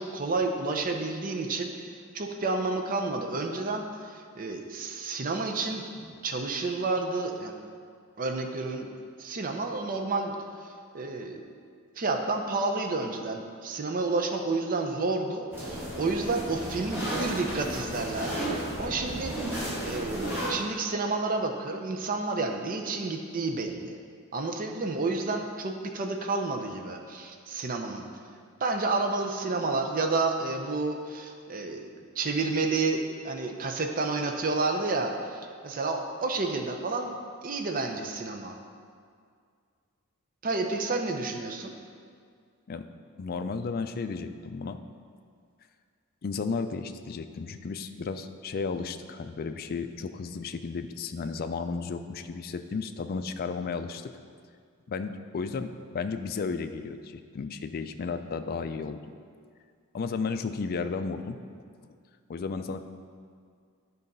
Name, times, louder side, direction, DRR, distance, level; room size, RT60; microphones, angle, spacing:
voice 1, 0.0-1.9 2.1-7.5 8.2-8.9 9.2-10.4 10.6-11.4 12.0-19.3 19.8-24.0 24.3-28.1 28.6-31.8 32.2-37.1 37.4-38.6 40.4-41.7, right 3 dB, 40° right, 4 dB, 0.6 m, -30 dB
sound 1, 15.5-20.5, right 1 dB, 10° right, 1.7 m, -33 dB
voice 2, 43.2-44.8 46.2-54.1 54.9-59.0 59.9-61.4 62.3-62.8, left 4 dB, 45° left, 8 dB, 0.4 m, -33 dB
9.9 x 4.0 x 5.4 m, 2.1 s
head